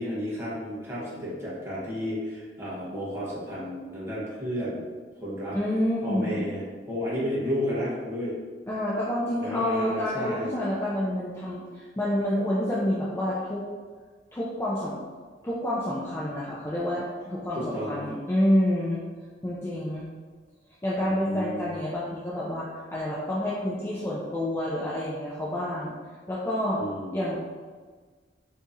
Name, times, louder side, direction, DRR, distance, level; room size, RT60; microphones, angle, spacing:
voice 1, 0.0-4.8 5.2-5.6 6.0-8.3 9.4-10.5 17.5-18.0 21.0-21.7 26.8-27.2, equal, 15° right, -8 dB, 1.0 m, -32 dB
voice 2, 5.5-6.5 8.7-13.6 14.3-15.0 15.4-19.0 19.4-20.1 20.8-25.9 26.3-26.8 27.1-27.4, left 1 dB, 15° left, -7 dB, 0.4 m, -28 dB
2.8 x 2.7 x 3.6 m, 1.5 s
head